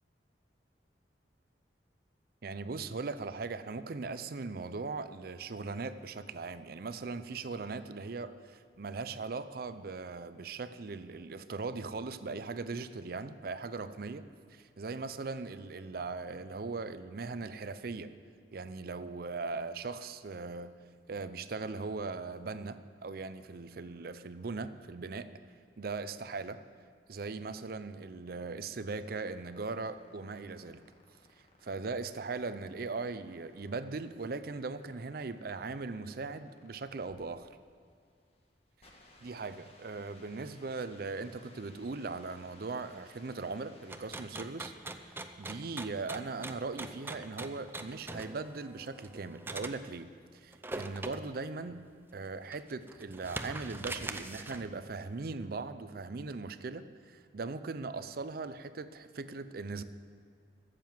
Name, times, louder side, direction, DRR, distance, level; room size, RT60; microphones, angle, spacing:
voice 1, 2.4-14.2 14.5-18.1 18.5-20.7 21.1-25.3 25.8-26.6 27.1-30.8 31.6-37.5 39.2-44.7 45.4-51.8 52.1-59.8, right 3 dB, 55° right, 12 dB, 0.5 m, -39 dB
sound 1, 28.5-44.4, left 2 dB, 35° left, 1.5 m, -62 dB
sound 2, 43.9-49.8 50.5-51.4 51.9-52.0 52.5-54.7, right 2 dB, 15° right, 0.5 m, -42 dB
14.0 x 7.5 x 7.6 m, 2.3 s
head